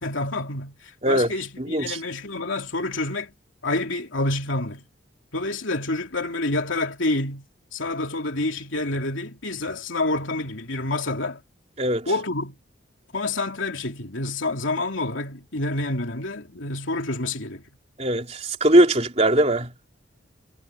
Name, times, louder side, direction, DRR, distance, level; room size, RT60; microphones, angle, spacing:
voice 1, 0.0-3.3 3.6-4.8 5.3-7.5 7.7-11.4 12.1-12.5 13.1-17.6, left 2 dB, 75° left, 3.0 m, -28 dB
voice 2, 1.6-2.0 11.8-12.1 18.0-19.7, right 1 dB, 35° right, 3.4 m, -20 dB
head